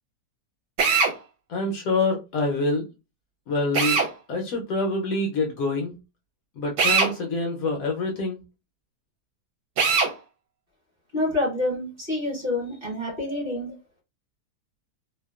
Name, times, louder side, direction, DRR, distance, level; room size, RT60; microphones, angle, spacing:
Drill, 0.8-1.1 3.7-4.1 6.8-7.1 9.8-10.1, right 5 dB, 70° right, 1.1 m, -20 dB
voice 1, 1.5-2.9 3.5-4.0 4.3-5.9 6.6-8.4, left 2 dB, 70° left, 1 dB, 0.9 m, -26 dB
voice 2, 11.1-13.7, left 1 dB, 40° right, -3 dB, 1.1 m, -27 dB
2.7 x 2.2 x 2.2 m, 0.27 s
omnidirectional pair, 1.8 m